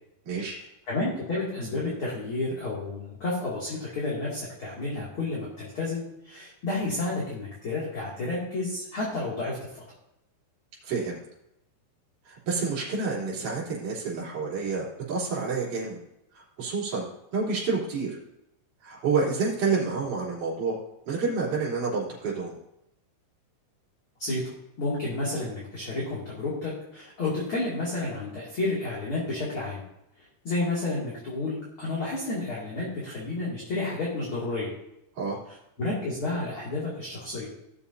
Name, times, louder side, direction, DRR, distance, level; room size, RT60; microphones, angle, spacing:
voice 1, 0.3-0.6 10.8-11.2 12.2-16.0 16.3-17.1 17.3-18.2 18.8-20.8 21.1-22.5 35.1-35.4, right 4 dB, 45° right, -6 dB, 4.5 m, -29 dB
voice 2, 0.9-9.8 24.2-24.4 24.8-29.8 30.4-34.7 35.8-37.5, left 2 dB, 35° left, -6 dB, 2.4 m, -31 dB
18.0 x 7.0 x 2.7 m, 0.83 s
omnidirectional pair, 5.4 m